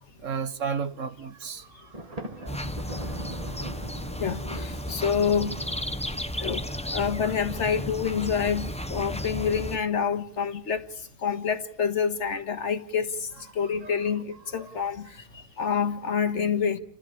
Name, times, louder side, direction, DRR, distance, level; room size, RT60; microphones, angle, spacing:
voice 1, 0.2-2.6 13.8-14.0, right 6 dB, 80° right, 1.7 m, -34 dB
Thunder, 1.9-6.5, right 1 dB, 30° right, 1.7 m, -41 dB
sound 1, 2.5-9.8, equal, 5° left, 1.0 m, -34 dB
voice 2, 4.2-5.6 6.4-6.6 6.9-10.9 11.2-13.3 13.6-16.8, left 7 dB, 65° left, 1.9 m, -27 dB
29.5 x 14.5 x 8.7 m
omnidirectional pair, 1.3 m